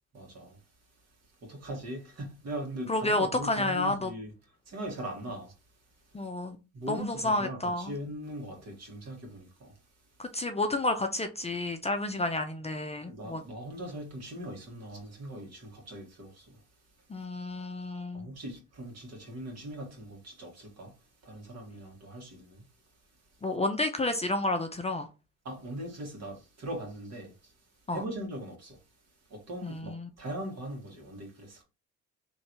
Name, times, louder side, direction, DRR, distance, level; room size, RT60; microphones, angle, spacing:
voice 1, 0.1-0.6 1.4-4.3 4.7-5.5 6.7-9.7 13.1-16.5 18.1-20.9 21.2-22.6 25.5-27.3 27.9-28.8 29.3-31.6, right 1 dB, 55° right, 1.8 m, -40 dB
voice 2, 2.9-4.1 6.1-6.6 6.9-7.9 10.2-13.4 17.1-18.3 23.4-25.1 27.9-28.0 29.6-30.1, left 2 dB, 20° left, 0.5 m, -30 dB
3.2 x 2.7 x 4.5 m
cardioid pair, 85°, 32 cm